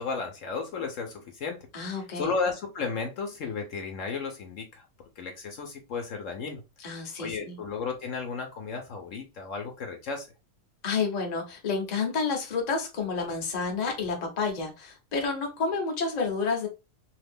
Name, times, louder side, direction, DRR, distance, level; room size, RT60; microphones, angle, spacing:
voice 1, 0.0-4.9 5.2-6.6 7.2-10.3, left 4 dB, 65° left, 1.0 m, -34 dB
voice 2, 1.7-2.3 6.8-7.6 10.8-16.7, left 4 dB, 35° left, 0.8 m, -30 dB
2.8 x 2.4 x 3.4 m
omnidirectional pair, 1.5 m